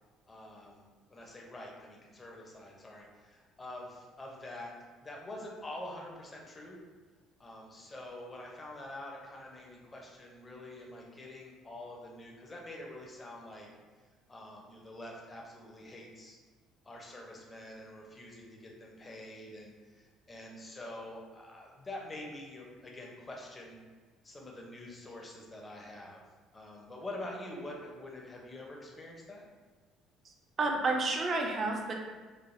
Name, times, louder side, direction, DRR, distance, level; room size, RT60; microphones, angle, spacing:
voice 1, 0.3-0.8 1.1-4.7 5.0-6.8 7.4-13.7 14.3-16.4 16.8-23.8 24.2-26.2 26.5-29.5, left 1 dB, 20° left, -1 dB, 0.6 m, -46 dB
voice 2, 30.6-31.9, right 3 dB, 35° right, 1 dB, 0.4 m, -30 dB
3.2 x 2.2 x 2.5 m, 1.4 s
cardioid pair, 110°, 0 cm